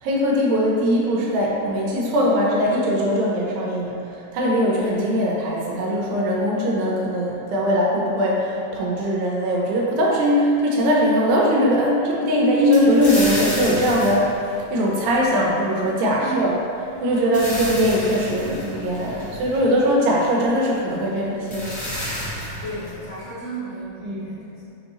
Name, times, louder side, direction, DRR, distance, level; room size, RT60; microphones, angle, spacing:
voice 1, 0.0-14.3 14.7-16.6 17.0-21.8 24.0-24.4, equal, 90° right, -3 dB, 2.5 m, -21 dB
sound 1, 12.7-15.4 16.9-20.0 21.1-21.2 21.5-23.3, left 1 dB, 50° left, 1.4 m, -31 dB
voice 2, 16.2-16.5 17.0-17.3 22.6-24.7, right 2 dB, 70° left, -15 dB, 1.2 m, -32 dB
6.1 x 2.6 x 3.0 m, 2.6 s
omnidirectional pair, 3.9 m